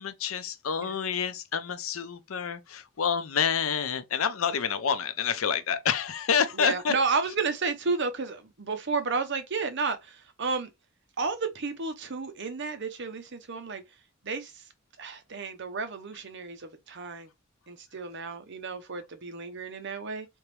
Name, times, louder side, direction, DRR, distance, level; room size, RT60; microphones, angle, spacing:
voice 1, 0.0-6.9, left 7 dB, 85° left, 0.6 m, -28 dB
voice 2, 6.5-10.7 11.2-13.8 14.2-14.7 15.0-17.3 17.7-20.3, right 4 dB, 60° right, 0.8 m, -32 dB
3.5 x 3.0 x 3.2 m
head